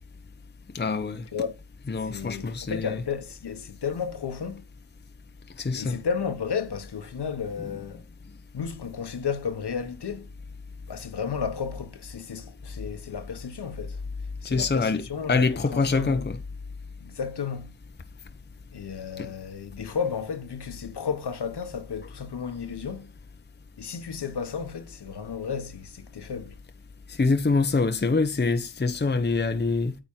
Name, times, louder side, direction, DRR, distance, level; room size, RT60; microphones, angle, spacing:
voice 1, 0.7-1.2 1.9-3.0 5.6-6.0 14.4-16.4 19.2-19.3 27.1-30.0, left 4 dB, 20° left, 1.0 m, -25 dB
voice 2, 2.0-4.7 5.7-8.0 8.5-10.3 10.9-14.0 14.4-16.3 17.0-17.7 18.7-23.1 23.8-26.6, left 6 dB, 50° left, 1.4 m, -33 dB
9.0 x 4.1 x 5.7 m
cardioid pair, 60°, 50 cm